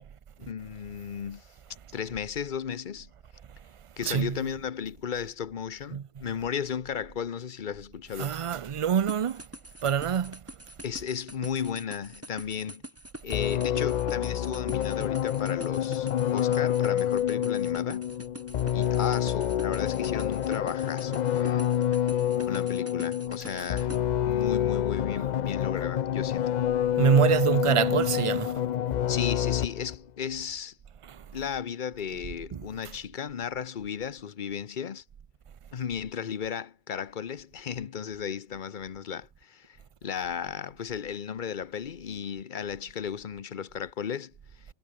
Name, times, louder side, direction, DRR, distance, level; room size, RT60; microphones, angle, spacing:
voice 1, 0.4-1.5 1.9-3.1 4.0-8.4 10.8-12.8 13.2-18.0 18.7-21.7 22.5-23.9 24.2-26.5 29.1-30.8 31.3-35.0 35.7-44.6, left 7 dB, 45° left, 0.9 m, -35 dB
voice 2, 8.2-9.4 9.8-10.4 27.0-28.5 31.1-31.2, right 8 dB, 55° right, 0.3 m, -25 dB
sound 1, 9.1-24.0, right 1 dB, 10° right, 3.0 m, -45 dB
sound 2, 13.3-30.0, left 10 dB, 60° left, 0.4 m, -27 dB
omnidirectional pair, 1.2 m